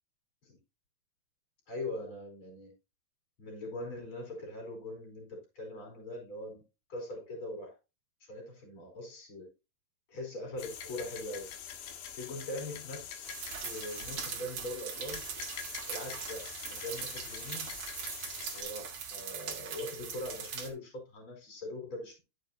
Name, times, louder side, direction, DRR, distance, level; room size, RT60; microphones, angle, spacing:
voice 1, 1.7-2.7 3.4-6.6 6.9-7.7 8.2-9.5 10.1-11.5 12.1-13.3 13.6-15.2 15.9-17.7 18.5-22.2, left 1 dB, 30° left, 3 dB, 4.8 m, -41 dB
sound 1, 10.6-18.6, left 8 dB, 90° left, 4.1 m, -45 dB
sound 2, 13.2-20.7, right 7 dB, 50° right, 2.5 m, -41 dB
11.5 x 7.6 x 2.8 m, 0.27 s
omnidirectional pair, 5.0 m